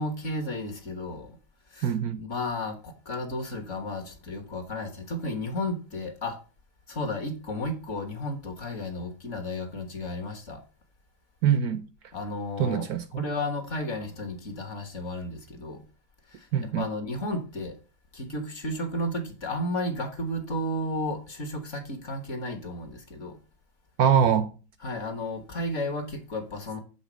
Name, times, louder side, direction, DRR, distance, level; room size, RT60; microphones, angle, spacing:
voice 1, 0.0-1.4 1.7-6.4 6.9-10.6 12.1-12.9 13.1-15.8 16.3-17.7 18.1-23.4 24.8-26.8, left 1 dB, 45° left, 1.5 m, -33 dB
voice 2, 1.8-2.2 11.4-11.9 12.6-13.2 16.5-16.8 24.0-24.5, right 8 dB, 70° right, 1.0 m, -23 dB
7.2 x 3.7 x 6.1 m
omnidirectional pair, 1.9 m